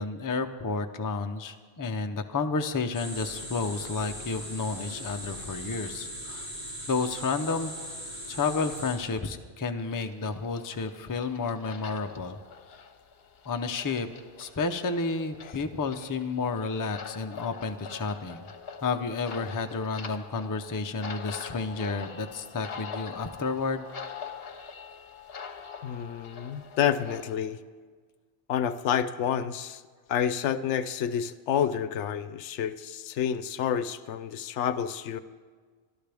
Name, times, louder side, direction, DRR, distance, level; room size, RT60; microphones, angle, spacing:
voice 1, 0.0-6.5 6.9-7.7 8.3-12.4 13.4-14.1 14.4-18.4 18.8-23.9, left 4 dB, 25° left, 6 dB, 0.5 m, -31 dB
sound 1, 2.9-8.9, equal, 40° right, 3.5 m, -39 dB
sound 2, 9.8-27.3, left 6 dB, 55° left, 1.1 m, -44 dB
voice 2, 25.8-27.6 28.5-29.8 30.1-35.2, left 9 dB, 75° left, 14 dB, 0.9 m, -29 dB
23.5 x 13.0 x 3.5 m, 1.5 s
omnidirectional pair, 1.2 m